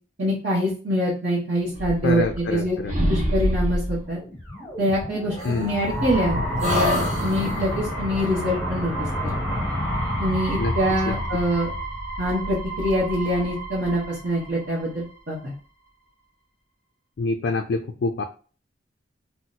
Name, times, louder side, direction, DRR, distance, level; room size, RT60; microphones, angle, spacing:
voice 1, 0.2-2.8 3.1-4.2 4.8-9.5 10.2-11.7 12.2-15.5, equal, 60° right, -7 dB, 1.0 m, -25 dB
sound 1, 1.7-2.6 2.9-4.0 5.4-6.2 6.6-7.8, equal, 35° right, 1.0 m, -26 dB
voice 2, 2.0-3.0 5.4-5.8 10.6-10.7 11.1-11.2 17.2-18.2, left 3 dB, 60° left, 5 dB, 0.3 m, -26 dB
sound 2, 4.1-15.1, equal, 10° left, 0.7 m, -29 dB
2.8 x 2.1 x 3.9 m, 0.38 s
head